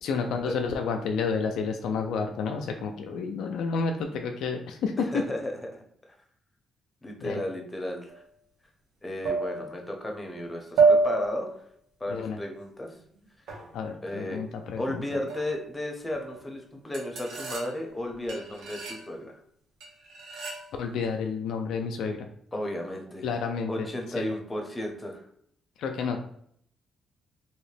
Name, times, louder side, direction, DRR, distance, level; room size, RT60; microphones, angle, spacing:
voice 1, 0.0-5.2 7.2-7.4 12.1-12.4 13.7-15.2 20.8-22.3 23.2-23.9 24.2-24.3 25.8-26.2, left 5 dB, 80° left, 4 dB, 0.4 m, -30 dB
voice 2, 5.0-5.8 7.0-8.2 9.0-11.5 12.0-12.9 14.0-14.4 14.8-19.4 22.5-23.3 23.7-25.2, left 1 dB, 20° left, 2 dB, 0.9 m, -34 dB
sound 1, 8.1-8.2 9.2-9.9 10.8-11.6 13.5-13.7 15.3-15.8 16.1-16.4 16.9-18.0 18.3-19.0 19.8-20.7, right 4 dB, 85° right, 1.0 m, -27 dB
3.0 x 2.7 x 3.3 m, 0.65 s
cardioid pair, 75°, 0 cm